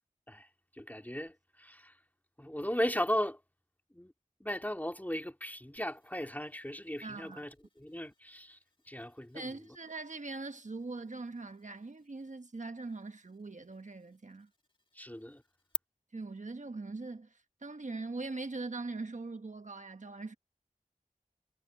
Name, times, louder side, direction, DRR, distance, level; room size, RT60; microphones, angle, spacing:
voice 1, 0.7-1.9 2.4-3.4 3.9-4.1 4.4-7.5 7.8-8.6 8.9-9.4 15.0-15.4, equal, 10° left, 2.3 m, -36 dB
sound 1, 5.8-15.8, left 1 dB, 35° left, 1.9 m, -50 dB
voice 2, 7.0-7.5 9.3-14.5 16.1-20.4, right 3 dB, 60° right, 1.3 m, -41 dB
wide cardioid pair, 50°, 14 cm